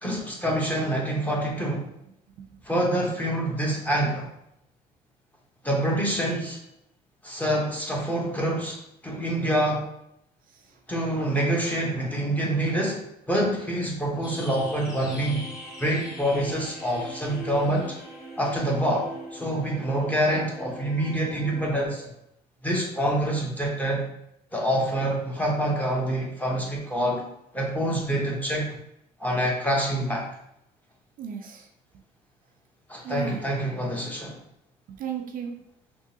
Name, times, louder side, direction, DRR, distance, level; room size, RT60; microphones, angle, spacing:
voice 1, 0.0-1.9 2.6-4.3 5.6-6.6 7.2-8.8 9.0-9.8 10.9-15.4 15.8-18.0 18.4-22.1 22.6-24.0 24.5-27.2 27.5-28.7 29.2-30.3 32.9-34.4, right 1 dB, 10° left, -2 dB, 0.9 m, -26 dB
sound 1, 14.2-21.9, right 1 dB, 70° left, 1.3 m, -41 dB
voice 2, 31.2-31.7 33.0-33.4 34.9-35.5, right 8 dB, 55° right, 3 dB, 0.4 m, -35 dB
3.6 x 2.8 x 2.7 m, 0.78 s
cardioid pair, 110°, 17 cm